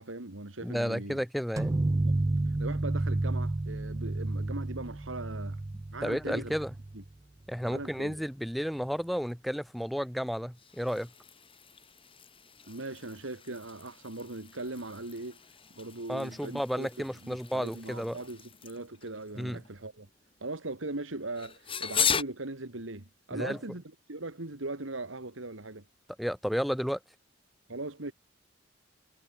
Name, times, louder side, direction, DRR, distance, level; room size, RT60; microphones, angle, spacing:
voice 1, 0.0-1.2 2.0-2.2 2.5-5.6 5.9-6.5 6.9-7.0 7.6-8.2 12.7-15.4 15.7-20.1 20.4-23.8 24.1-25.8 27.7-28.1, right 2 dB, 85° right, 2.2 m, -39 dB
voice 2, 0.6-1.8 6.0-6.7 7.5-11.1 16.1-18.2 19.4-19.6 23.3-23.6 26.2-27.0, equal, ahead, 1.0 m, -32 dB
sound 1, 1.6-7.1, right 2 dB, 20° right, 0.3 m, -31 dB
sound 2, 6.4-22.2, left 7 dB, 30° left, 4.8 m, -39 dB
head